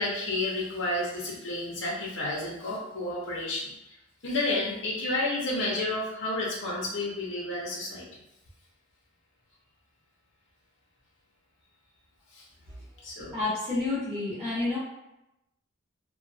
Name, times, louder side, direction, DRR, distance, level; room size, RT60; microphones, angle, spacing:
voice 1, 0.0-3.9 4.2-8.0 12.3-12.4 13.0-13.3, left 2 dB, 70° left, -5 dB, 0.8 m, -31 dB
voice 2, 13.3-14.8, left 3 dB, 5° left, -14 dB, 1.2 m, -29 dB
3.1 x 2.2 x 2.7 m, 0.88 s
head